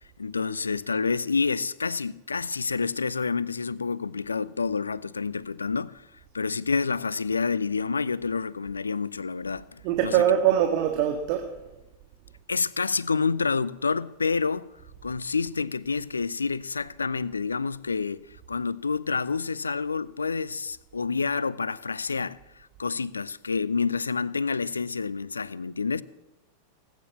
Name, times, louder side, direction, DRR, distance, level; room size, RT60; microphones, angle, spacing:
voice 1, 0.2-6.1 6.3-10.2 12.5-14.7 15.0-26.0, left 4 dB, 75° left, 0.5 m, -28 dB
voice 2, 9.8-11.5, right 10 dB, 45° right, 1.6 m, -23 dB
19.0 x 9.5 x 7.2 m
figure-of-eight pair, 90°, 0 cm